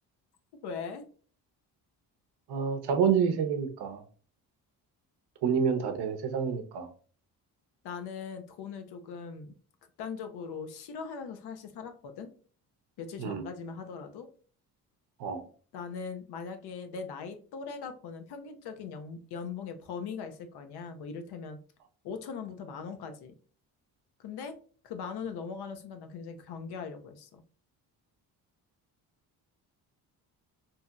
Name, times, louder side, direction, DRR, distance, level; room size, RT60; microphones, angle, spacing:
voice 1, 0.6-1.0 7.8-9.5 10.0-12.3 13.0-14.3 15.7-21.6 22.0-23.3 24.2-24.6 24.8-27.4, left 5 dB, 80° left, 8 dB, 0.7 m, -40 dB
voice 2, 2.5-4.0 5.4-6.9 13.2-13.4 15.2-15.4, right 7 dB, 85° right, 7 dB, 0.7 m, -28 dB
2.8 x 2.8 x 2.3 m, 0.42 s
cardioid pair, 90°, 39 cm